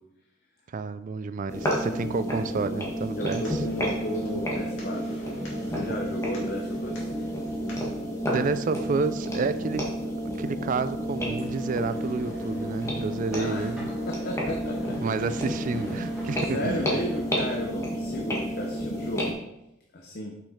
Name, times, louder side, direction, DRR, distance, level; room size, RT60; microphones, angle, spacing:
voice 1, 0.7-3.6 8.2-9.9 10.4-13.9 15.0-16.9, right 4 dB, 40° right, 0.3 m, -30 dB
sound 1, 1.5-19.3, equal, 15° left, 1.4 m, -31 dB
sound 2, 3.0-8.0, left 1 dB, 65° left, 2.1 m, -50 dB
voice 2, 3.2-5.3 5.6-7.1 13.4-13.7 14.1-15.0 15.9-16.0 16.5-19.4 19.9-20.3, equal, 45° left, 0.7 m, -34 dB
sound 3, 11.4-17.3, equal, 5° right, 1.7 m, -49 dB
5.9 x 5.6 x 4.2 m
head